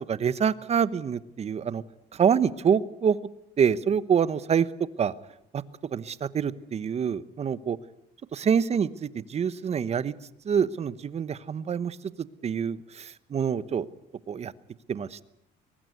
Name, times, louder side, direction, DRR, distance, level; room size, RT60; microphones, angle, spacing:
voice 1, 0.1-1.8 2.2-3.2 3.6-4.7 5.0-5.1 5.9-7.8 8.3-10.1 10.4-12.0 12.4-13.9 14.3-14.5 14.9-15.2, right 7 dB, 40° right, 16 dB, 1.1 m, -26 dB
22.5 x 19.0 x 9.6 m, 0.78 s
cardioid pair, 110°, 17 cm